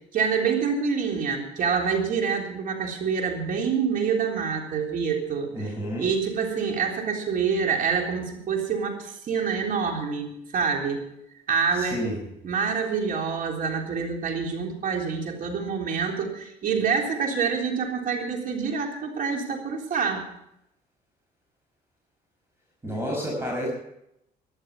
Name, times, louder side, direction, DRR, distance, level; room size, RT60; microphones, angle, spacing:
voice 1, 0.1-11.0 11.5-12.0 12.4-20.3, right 6 dB, 55° right, 2 dB, 3.6 m, -26 dB
voice 2, 5.5-6.1 11.7-12.2 22.8-23.7, equal, 15° right, -1 dB, 5.5 m, -30 dB
15.5 x 11.5 x 5.4 m, 0.78 s
cardioid pair, 110°, 17 cm